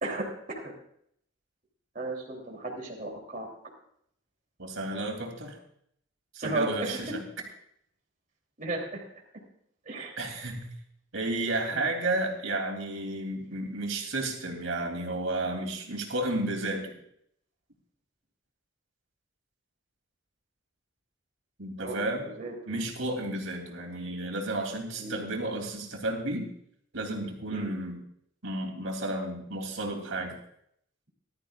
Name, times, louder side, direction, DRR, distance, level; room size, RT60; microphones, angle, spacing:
voice 1, 1.9-3.5 6.4-7.1 8.6-9.0 9.8-10.2 11.7-11.8 21.8-22.8 25.0-25.2 27.5-27.7, right 2 dB, 40° right, -2 dB, 3.1 m, -35 dB
voice 2, 4.6-5.6 6.3-7.1 10.2-10.6 11.1-16.9 21.6-22.2 22.7-26.5 26.9-28.0 28.4-30.3, right 2 dB, 80° right, 1 dB, 3.0 m, -32 dB
20.0 x 12.5 x 2.4 m, 0.70 s
head